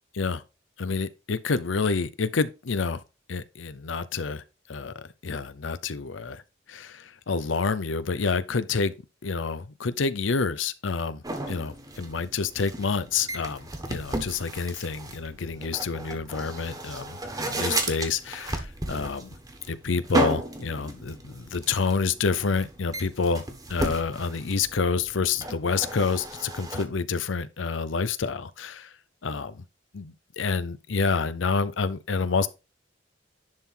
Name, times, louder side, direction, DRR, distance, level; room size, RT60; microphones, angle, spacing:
voice 1, 0.8-3.0 3.3-4.4 4.7-6.4 6.7-8.9 9.2-19.3 19.7-23.4 23.7-28.9 29.2-29.6 29.9-32.5, left 4 dB, 80° left, 0.7 m, -28 dB
sound 1, 11.2-26.8, right 2 dB, 20° right, 1.3 m, -34 dB
10.5 x 3.8 x 4.4 m
head